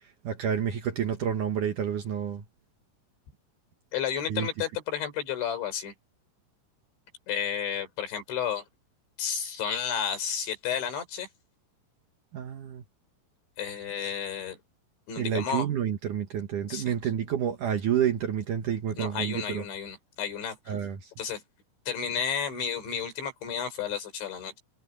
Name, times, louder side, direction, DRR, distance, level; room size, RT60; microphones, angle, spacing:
voice 1, 0.2-2.4 4.3-4.5 12.3-12.8 15.2-19.6 20.7-21.1, right 9 dB, 65° right, 2.2 m, -29 dB
voice 2, 3.9-5.9 7.3-8.7 9.2-11.3 13.6-14.6 15.1-15.7 16.7-16.9 18.9-20.8 21.2-21.4 21.9-24.6, left 8 dB, 85° left, 7.1 m, -32 dB
omnidirectional pair, 5.2 m